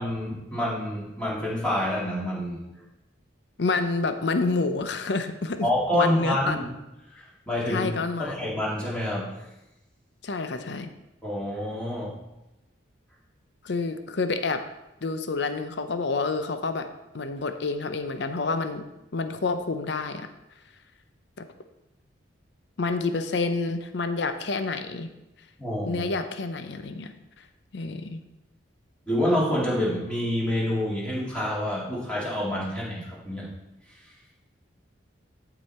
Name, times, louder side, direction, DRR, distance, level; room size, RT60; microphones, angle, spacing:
voice 1, 0.0-2.7 5.6-6.6 7.1-7.9 8.2-9.5 11.2-12.1 25.6-26.0 29.1-33.5, left 1 dB, 5° left, -6 dB, 2.4 m, -27 dB
voice 2, 3.6-5.7 5.9-6.6 7.7-8.4 10.2-10.9 13.6-14.6 15.0-16.9 17.1-18.8 19.1-20.3 22.8-25.1 25.9-27.1 27.7-28.2, left 3 dB, 60° left, 9 dB, 0.6 m, -28 dB
13.5 x 4.9 x 4.3 m, 0.93 s
head